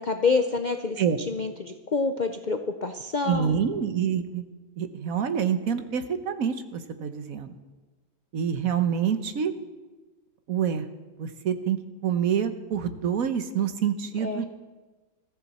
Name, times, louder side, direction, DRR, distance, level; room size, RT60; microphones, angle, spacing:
voice 1, 0.0-1.0 1.3-3.5 14.2-14.4, left 4 dB, 50° left, 6 dB, 0.5 m, -27 dB
voice 2, 3.3-4.4 4.8-7.5 8.3-9.5 10.5-10.9 11.2-14.5, right 8 dB, 65° right, 9 dB, 1.3 m, -27 dB
21.0 x 14.0 x 4.2 m, 1.3 s
omnidirectional pair, 1.7 m